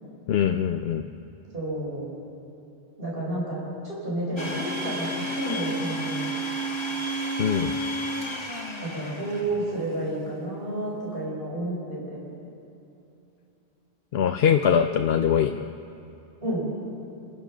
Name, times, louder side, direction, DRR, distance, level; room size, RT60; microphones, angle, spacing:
voice 1, 0.3-1.1 7.4-7.7 14.1-15.6, left 8 dB, 65° left, 6 dB, 0.9 m, -22 dB
voice 2, 1.5-2.1 3.0-6.3 8.8-12.2 16.4-16.7, right 1 dB, 55° right, -6 dB, 5.3 m, -31 dB
Domestic sounds home sounds, 4.4-9.9, right 1 dB, 25° left, 1.5 m, -31 dB
27.5 x 15.0 x 6.3 m, 2.8 s
omnidirectional pair, 1.1 m